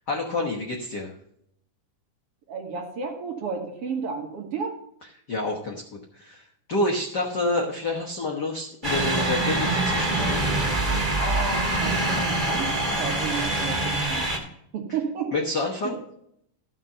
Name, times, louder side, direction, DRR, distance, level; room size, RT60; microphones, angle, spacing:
voice 1, 0.1-1.1 5.3-10.4 15.3-15.9, left 2 dB, 60° left, -1 dB, 1.0 m, -28 dB
voice 2, 2.5-4.8 11.2-14.3 14.7-15.3 15.8-16.0, right 5 dB, 55° right, 1 dB, 2.1 m, -32 dB
sound 1, 8.8-14.4, right 2 dB, 20° right, 1.7 m, -25 dB
13.0 x 5.4 x 5.6 m, 0.73 s
omnidirectional pair, 3.8 m